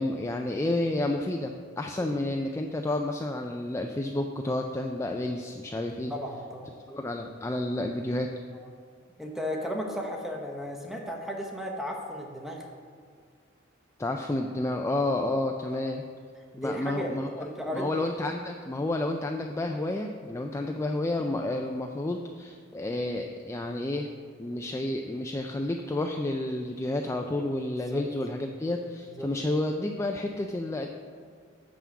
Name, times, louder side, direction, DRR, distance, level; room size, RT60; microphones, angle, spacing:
voice 1, 0.0-6.1 6.9-8.3 14.0-16.0 16.6-17.4 17.7-24.1 24.4-30.9, left 1 dB, 15° left, 3 dB, 0.3 m, -30 dB
voice 2, 6.1-6.7 8.5-8.7 9.2-12.6 15.7-15.8 16.5-17.1 17.4-17.9 27.9-28.0 29.1-29.3, equal, ahead, 1 dB, 0.9 m, -35 dB
6.2 x 5.7 x 7.0 m, 2.1 s
head